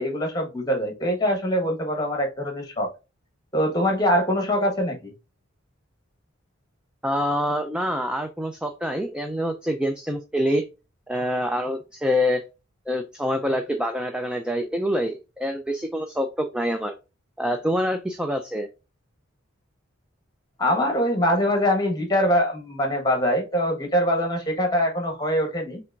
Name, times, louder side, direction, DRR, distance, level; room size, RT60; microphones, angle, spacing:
voice 1, 0.0-2.9 3.5-5.1 20.6-25.8, equal, 20° left, 1.4 m, -23 dB
voice 2, 7.0-10.6 11.1-12.4 12.9-16.9 17.4-18.7, equal, 5° right, 0.4 m, -26 dB
5.9 x 3.4 x 2.5 m
head